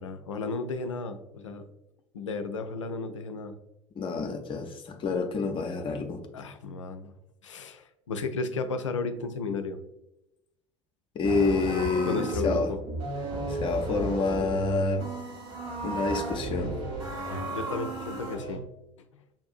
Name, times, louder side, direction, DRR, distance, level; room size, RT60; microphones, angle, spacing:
voice 1, 0.0-1.6 2.1-3.6 6.3-7.1 7.4-9.8 12.1-12.8 17.3-18.6 19.1-19.2, left 3 dB, 80° left, 8 dB, 0.4 m, -34 dB
voice 2, 4.0-6.2 11.1-12.7 13.5-15.1 15.8-16.8, left 4 dB, 35° left, 5 dB, 0.7 m, -28 dB
sound 1, 11.2-18.6, right 2 dB, 65° right, 1.5 m, -33 dB
7.0 x 2.5 x 2.4 m, 0.90 s
figure-of-eight pair, 65°, 16 cm